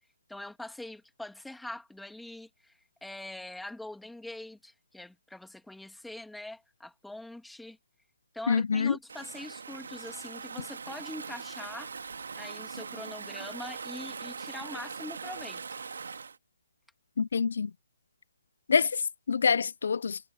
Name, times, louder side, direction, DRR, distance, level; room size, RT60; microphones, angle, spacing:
voice 1, 0.3-2.7 3.0-7.8 8.3-11.9 12.3-15.8, left 1 dB, ahead, 2.7 m, -43 dB
voice 2, 8.5-9.0 17.2-17.7 18.7-20.2, left 6 dB, 65° left, 0.4 m, -26 dB
Stream / Ocean, 9.1-16.4, right 5 dB, 75° right, 2.5 m, -41 dB
hypercardioid pair, 155°, 0 cm